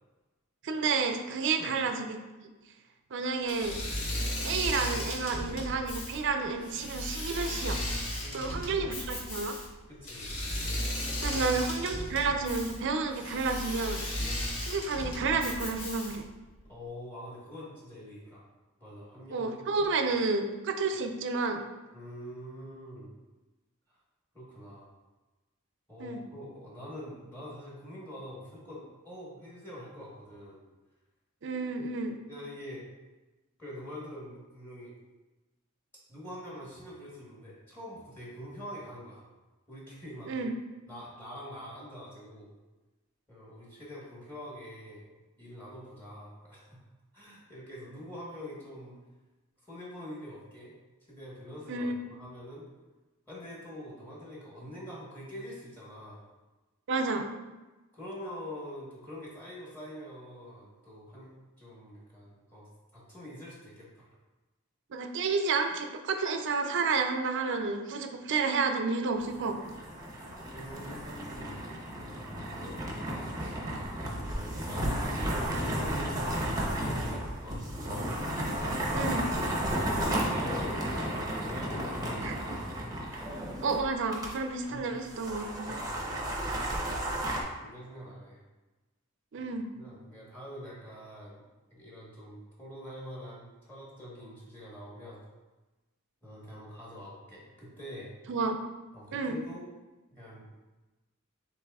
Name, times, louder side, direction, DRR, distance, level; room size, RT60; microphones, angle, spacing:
voice 1, 0.6-2.5 3.1-3.8 4.4-7.8 8.3-9.6 11.2-14.0 14.6-16.2 19.3-21.6 26.0-26.2 31.4-32.2 40.3-40.5 51.7-52.2 56.9-57.3 64.9-69.6 78.9-79.3 82.2-82.6 83.6-85.8 89.3-89.7 98.3-98.6 99.1-99.4, right 4 dB, 55° right, 6 dB, 0.4 m, -31 dB
Engine / Mechanisms, 3.5-16.3, left 1 dB, 70° left, 1.3 m, -35 dB
voice 2, 8.2-8.8 9.9-10.3 11.1-11.9 16.6-18.4 18.8-19.5 21.9-23.1 24.3-24.9 25.9-30.6 32.3-32.8 33.6-34.9 36.1-39.2 39.7-40.3 40.9-42.5 43.3-45.1 45.4-46.7 47.1-48.9 49.7-50.7 51.1-52.7 53.3-56.3 57.9-61.3 61.6-62.7 62.9-64.1 70.5-71.6 72.0-73.6 74.1-78.1 79.7-82.5 83.1-83.3 84.7-84.9 85.7-86.0 86.3-86.5 87.6-88.4 89.4-89.5 89.7-91.4 91.7-95.2 96.2-98.1 98.9-99.7 100.1-100.5, equal, 10° left, -6 dB, 1.1 m, -45 dB
sound 1, 69.2-84.3 84.6-84.7 85.1-87.4, right 1 dB, 15° right, 0.7 m, -33 dB
7.3 x 3.0 x 2.3 m, 1.2 s
head